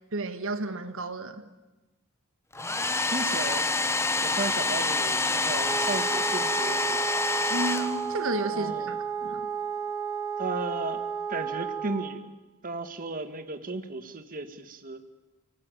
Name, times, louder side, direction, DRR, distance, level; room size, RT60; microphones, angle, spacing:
voice 1, 0.1-1.4 7.5-8.9 9.2-9.5, right 2 dB, 65° right, 9 dB, 1.6 m, -32 dB
Domestic sounds home sounds, 2.5-8.4, left 3 dB, 10° left, 1.0 m, -27 dB
voice 2, 3.0-3.7 4.2-7.0 8.5-9.0 10.4-12.2 12.6-15.0, right 3 dB, 40° right, 8 dB, 1.6 m, -35 dB
Wind instrument woodwind instrument, 5.6-12.2, right 7 dB, 15° right, 2.7 m, -33 dB
30.0 x 18.5 x 9.1 m, 1.1 s
head